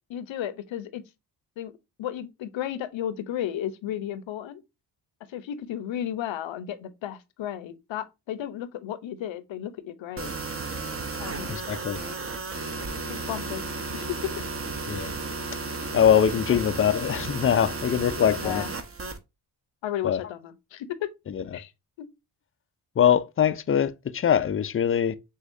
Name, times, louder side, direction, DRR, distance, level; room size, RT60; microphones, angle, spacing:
voice 1, 0.1-1.0 1.6-1.7 2.0-4.6 5.3-10.3 11.2-11.5 13.1-13.6 13.9-14.3 14.9-15.0 16.5-16.6 18.4-18.7 19.8-21.1 21.5-21.7 22.0-22.1, left 11 dB, 65° left, 0.7 m, -33 dB
sound 1, 10.2-19.2, right 3 dB, 30° right, 0.8 m, -33 dB
voice 2, 11.5-12.0 14.9-15.1 15.9-18.6 20.0-20.2 21.3-21.6 23.0-25.2, left 8 dB, 30° left, 0.4 m, -23 dB
6.3 x 2.4 x 2.5 m
supercardioid pair, 55°, 49 cm